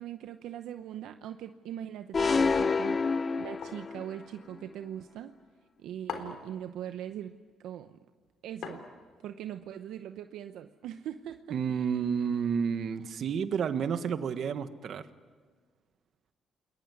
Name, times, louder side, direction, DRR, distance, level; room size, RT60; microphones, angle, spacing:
voice 1, 0.0-5.3 5.8-7.3 7.6-8.0 8.4-8.8 9.2-11.6, right 10 dB, 85° right, 8 dB, 0.8 m, -41 dB
sound 1, 2.1-4.1, left 4 dB, 35° left, 0.8 m, -27 dB
sound 2, 3.6-3.9 6.1-6.5 8.6-9.2, left 6 dB, 75° left, 3.6 m, -40 dB
voice 2, 11.5-15.1, right 7 dB, 65° right, 11 dB, 1.4 m, -30 dB
29.0 x 21.5 x 9.6 m, 1.5 s
cardioid pair, 90°, 0 cm